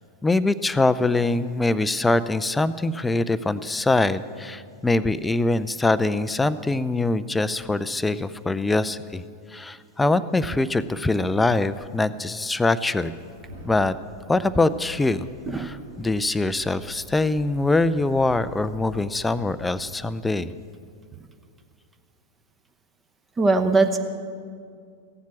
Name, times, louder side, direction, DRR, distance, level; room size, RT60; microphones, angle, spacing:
voice 1, 0.2-9.2 9.5-13.1 13.6-14.0 14.3-15.3 15.5-20.5, left 2 dB, 10° left, 15 dB, 0.4 m, -23 dB
sound 1, 12.8-19.8, left 1 dB, 75° right, 3.7 m, -46 dB
voice 2, 23.4-24.0, right 3 dB, 20° right, 6 dB, 0.9 m, -20 dB
16.0 x 7.3 x 8.7 m, 2.3 s
figure-of-eight pair, 90°, 0 cm